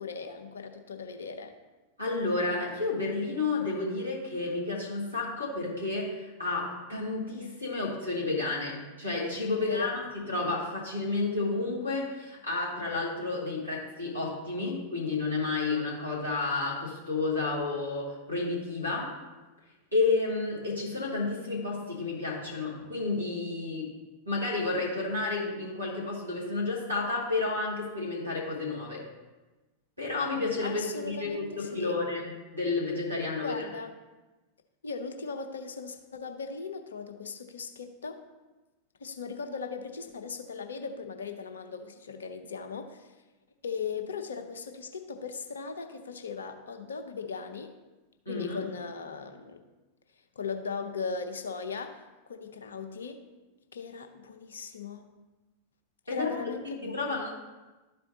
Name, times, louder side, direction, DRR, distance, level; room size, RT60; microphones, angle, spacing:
voice 1, 0.0-1.5 9.6-10.0 30.6-32.0 33.4-33.9 34.8-38.2 39.0-43.1 43.6-47.7 48.3-49.6 50.4-53.3 53.7-55.1 56.1-57.2, left 5 dB, 70° left, 6 dB, 0.6 m, -38 dB
voice 2, 2.0-19.2 19.9-23.9 24.3-29.0 30.0-33.7 48.3-48.6 56.1-56.3 56.8-57.3, left 3 dB, 90° right, -4 dB, 2.0 m, -31 dB
12.0 x 4.4 x 2.8 m, 1.1 s
figure-of-eight pair, 90°, 0 cm